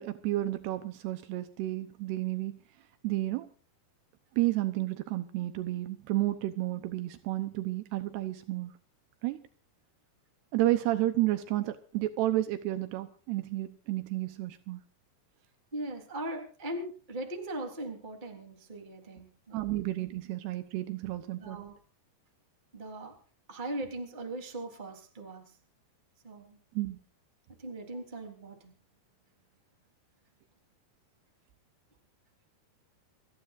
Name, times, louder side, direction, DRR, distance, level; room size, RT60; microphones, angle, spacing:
voice 1, 0.0-2.6 3.0-3.5 4.4-8.7 9.2-9.4 10.5-14.8 19.5-21.6 26.8-27.0, right 16 dB, 80° right, 10 dB, 3.0 m, -31 dB
voice 2, 15.7-19.6 21.4-21.8 22.7-23.2 23.5-25.4 26.2-26.6 27.6-28.7, right 1 dB, 10° right, 3 dB, 3.2 m, -39 dB
28.0 x 14.5 x 2.6 m, 0.39 s
omnidirectional pair, 4.7 m